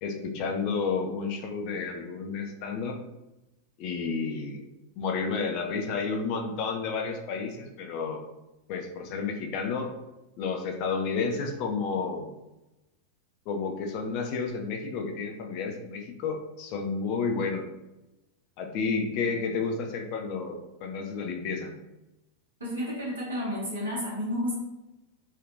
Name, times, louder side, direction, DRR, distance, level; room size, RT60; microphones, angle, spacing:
voice 1, 0.0-3.0 3.8-4.7 5.0-8.2 8.7-9.9 10.4-12.3 13.5-17.6 18.6-21.7, left 5 dB, 45° left, 3 dB, 0.4 m, -31 dB
voice 2, 22.6-24.6, equal, 70° right, -6 dB, 1.2 m, -31 dB
3.2 x 2.4 x 2.5 m, 0.98 s
figure-of-eight pair, 90°, 0 cm